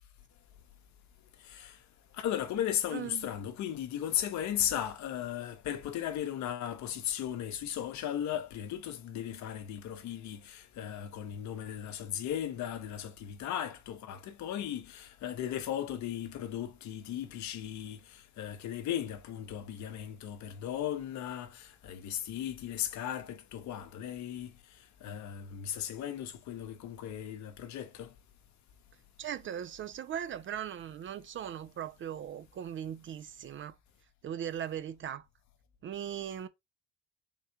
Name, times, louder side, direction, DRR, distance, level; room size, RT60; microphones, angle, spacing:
voice 1, 1.4-1.8 2.1-24.5 25.0-28.1, left 10 dB, 60° left, 0.9 m, -36 dB
voice 2, 2.9-3.3 29.2-33.8 34.2-35.2 35.8-36.5, right 9 dB, 35° right, 0.5 m, -39 dB
3.7 x 3.3 x 2.8 m
hypercardioid pair, 65°, 33 cm